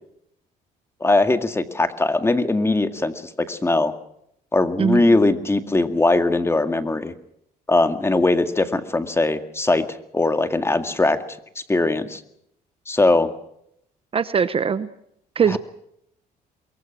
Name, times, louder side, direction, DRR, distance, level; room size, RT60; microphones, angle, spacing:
voice 1, 1.0-3.1 3.5-3.9 4.5-7.1 7.7-11.2 11.7-12.2 12.9-13.3 15.5-15.6, left 2 dB, 15° left, 8 dB, 2.0 m, -20 dB
voice 2, 4.8-5.1 14.1-14.9 15.4-15.6, right 6 dB, 35° right, 14 dB, 0.9 m, -21 dB
23.0 x 22.5 x 6.0 m, 0.75 s
cardioid pair, 110°, 17 cm